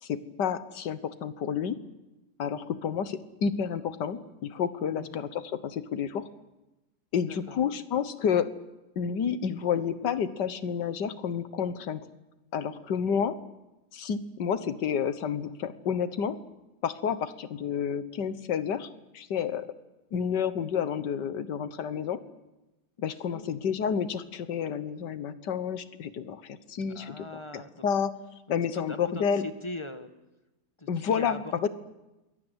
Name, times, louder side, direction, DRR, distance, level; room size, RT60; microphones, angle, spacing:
voice 1, 0.0-1.8 2.4-6.3 7.1-8.5 9.0-12.1 12.5-13.4 13.9-16.4 16.8-18.9 19.1-19.7 20.1-22.2 23.0-27.3 27.5-28.1 28.5-29.4 30.9-31.7, left 7 dB, 80° left, 14 dB, 1.9 m, -30 dB
voice 2, 4.9-5.2 7.3-7.6 23.3-23.6 26.9-27.8 28.7-30.1 30.8-31.7, left 2 dB, 20° left, 10 dB, 1.3 m, -41 dB
27.5 x 22.0 x 8.1 m, 1.0 s
omnidirectional pair, 1.8 m